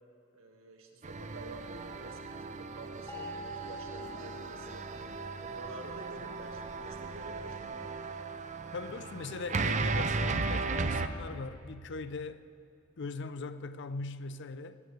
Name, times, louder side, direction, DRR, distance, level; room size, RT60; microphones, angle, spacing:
voice 1, 0.3-4.9 5.4-7.6, right 1 dB, 85° right, 2 dB, 1.8 m, -49 dB
sound 1, 1.0-11.1, right 3 dB, 35° right, 0.6 m, -36 dB
sound 2, 3.1-5.3, right 1 dB, 15° left, 2.7 m, -45 dB
voice 2, 8.7-12.5 13.0-14.8, left 3 dB, 60° left, 13 dB, 0.6 m, -40 dB
20.5 x 17.5 x 3.3 m, 2.6 s
head